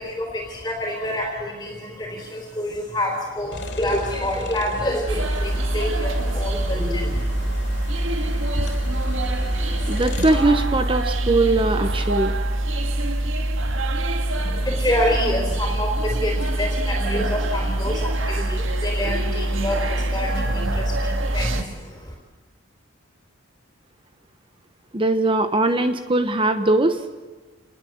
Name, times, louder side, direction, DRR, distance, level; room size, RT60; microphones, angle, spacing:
voice 1, 0.0-7.5 14.4-22.1, equal, 15° left, 0 dB, 4.1 m, -27 dB
sound 1, 3.5-10.5, left 1 dB, 55° left, 3.7 m, -33 dB
sound 2, 5.1-21.6, right 1 dB, 65° right, 2.1 m, -24 dB
voice 2, 9.9-12.3 24.9-27.0, right 2 dB, 25° right, 8 dB, 1.0 m, -20 dB
28.5 x 21.0 x 8.0 m, 1.3 s
head